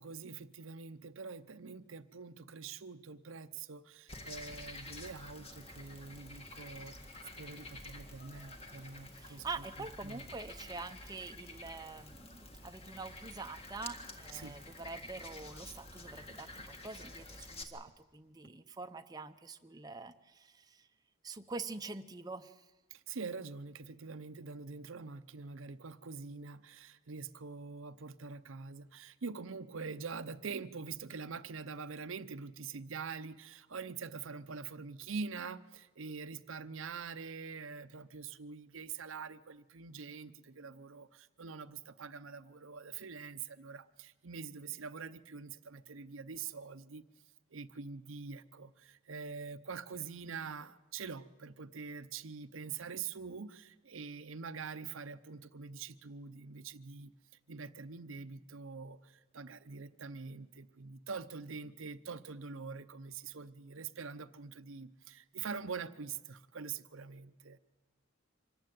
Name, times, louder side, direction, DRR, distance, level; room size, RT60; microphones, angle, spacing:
voice 1, 0.0-7.1 7.4-9.5 10.0-10.2 14.3-14.6 22.9-47.0 47.5-57.1 57.5-67.6, right 5 dB, 80° right, 11 dB, 0.7 m, -45 dB
Frog, 4.1-17.6, left 2 dB, 30° left, 1.8 m, -49 dB
voice 2, 9.2-20.9 21.2-22.6, right 3 dB, 20° right, 7 dB, 0.7 m, -45 dB
25.0 x 14.5 x 9.3 m, 1.2 s
head